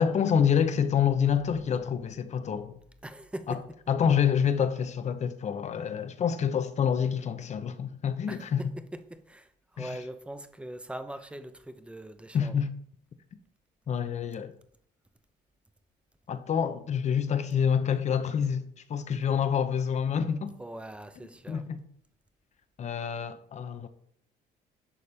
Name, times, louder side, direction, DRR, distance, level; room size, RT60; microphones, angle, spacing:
voice 1, 0.0-2.8 3.5-3.6 3.9-8.6 9.8-9.9 12.3-12.7 13.9-14.5 16.3-20.5 21.5-21.8 22.8-23.9, left 7 dB, 45° left, 0.9 m, -27 dB
voice 2, 3.0-3.6 8.3-12.6 20.6-21.6, right 1 dB, 5° right, 0.8 m, -41 dB
11.0 x 4.2 x 5.1 m
cardioid pair, 110°, 17 cm